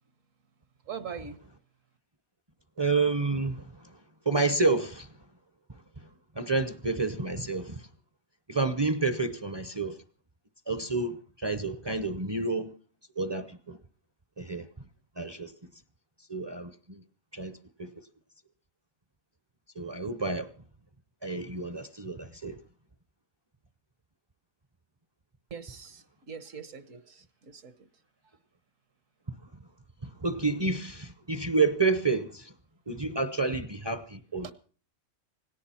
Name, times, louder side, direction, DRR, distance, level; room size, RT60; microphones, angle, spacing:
voice 1, 0.9-1.4 25.5-27.7 34.4-34.5, right 6 dB, 70° right, 1.6 m, -42 dB
voice 2, 2.8-4.0 4.2-5.2 6.0-6.1 6.3-7.9 8.5-10.0 10.7-12.7 13.2-13.8 14.4-14.7 15.2-15.5 16.3-17.0 17.3-17.9 19.8-20.5 21.2-22.6 30.0-32.5 32.9-34.5, right 3 dB, 25° right, 0.6 m, -29 dB
18.0 x 17.0 x 4.3 m
omnidirectional pair, 1.4 m